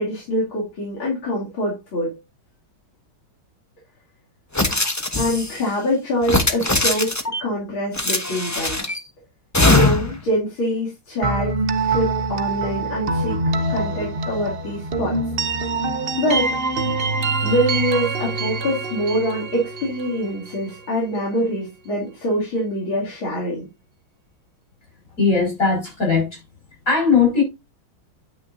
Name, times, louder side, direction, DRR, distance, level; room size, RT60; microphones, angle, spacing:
voice 1, 0.0-2.2 5.2-7.1 7.4-8.8 9.7-11.5 11.9-13.4 13.7-15.2 16.2-16.6 17.4-23.7, equal, 75° left, 3.5 m, -24 dB
sound 1, 4.5-5.6 6.2-7.4 7.9-9.0 9.5-10.2, left 2 dB, 15° left, 0.5 m, -20 dB
sound 2, 11.2-21.0, right 3 dB, 75° right, 0.5 m, -25 dB
voice 2, 25.2-26.4 26.9-27.4, left 5 dB, 40° left, 5.9 m, -18 dB
9.4 x 8.9 x 2.7 m
omnidirectional pair, 2.2 m